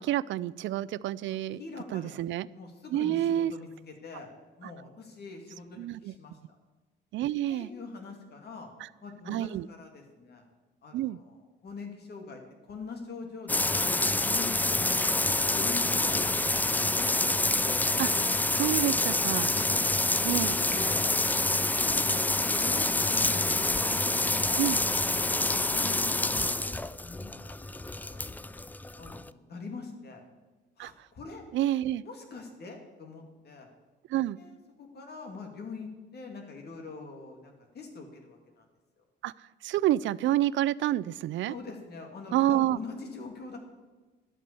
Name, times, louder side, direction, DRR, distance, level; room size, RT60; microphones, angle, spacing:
voice 1, 0.0-1.6 1.9-2.5 2.9-3.5 5.8-6.1 7.1-7.7 9.3-9.7 10.9-11.2 18.0-18.2 18.5-19.5 20.2-20.5 24.6-24.8 30.8-30.9 31.5-32.0 34.1-34.4 39.2-39.3 39.6-41.5 42.3-42.8, right 13 dB, 75° right, 19 dB, 0.4 m, -28 dB
voice 2, 1.2-2.2 2.5-4.3 4.6-6.4 7.5-8.7 9.0-10.4 10.8-12.4 12.7-15.0 15.5-17.4 19.5-19.8 20.2-21.1 21.8-27.6 27.9-28.2 28.9-30.2 30.8-31.4 32.0-33.7 34.4-38.7 39.0-39.1 41.5-43.6, left 4 dB, 55° left, 3 dB, 2.6 m, -44 dB
sound 1, 13.5-29.3, left 2 dB, 10° left, 0.3 m, -27 dB
11.5 x 8.3 x 6.9 m, 1.2 s
cardioid pair, 90°, 20 cm